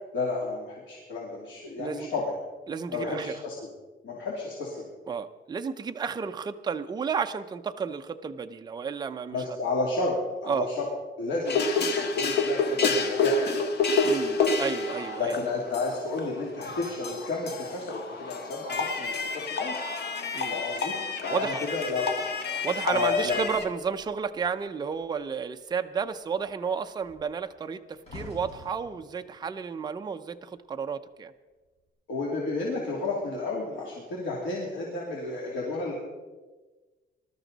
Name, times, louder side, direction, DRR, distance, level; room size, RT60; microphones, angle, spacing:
voice 1, 0.1-2.3 2.9-3.7 4.0-4.8 9.3-10.9 11.2-13.5 15.2-19.8 20.4-20.9 21.2-22.1 22.9-23.4 32.1-36.0, left 3 dB, 75° left, -3 dB, 2.7 m, -31 dB
voice 2, 1.8-2.1 2.7-3.3 5.1-9.4 10.5-10.7 14.0-15.3 20.3-20.6 21.3-21.6 22.6-31.3, right 6 dB, 20° right, 7 dB, 0.5 m, -32 dB
sound 1, 11.4-23.6, left 3 dB, 55° left, 1.4 m, -29 dB
sound 2, 22.1-24.6 24.9-25.2 25.5-30.9 31.6-31.9, left 2 dB, 35° left, 5.3 m, -50 dB
21.0 x 12.5 x 4.0 m, 1.3 s
wide cardioid pair, 170°, 20 cm